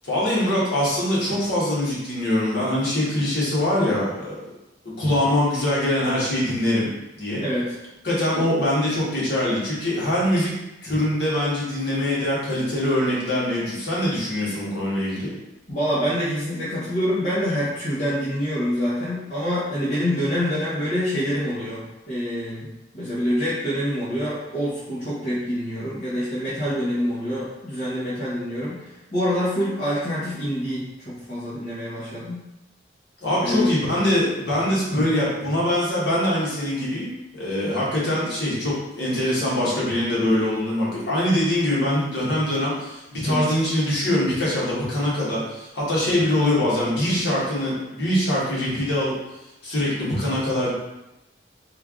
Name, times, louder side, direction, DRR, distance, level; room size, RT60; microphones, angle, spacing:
voice 1, 0.0-4.4 5.0-6.9 7.2-7.4 8.0-10.5 10.8-15.3 33.2-49.1 49.6-50.8, left 1 dB, 60° left, -7 dB, 1.3 m, -23 dB
voice 2, 7.4-7.7 15.7-22.7 22.9-32.4 33.4-33.7 43.2-43.4, equal, 40° left, -11 dB, 0.8 m, -26 dB
3.3 x 2.3 x 3.6 m, 0.95 s
head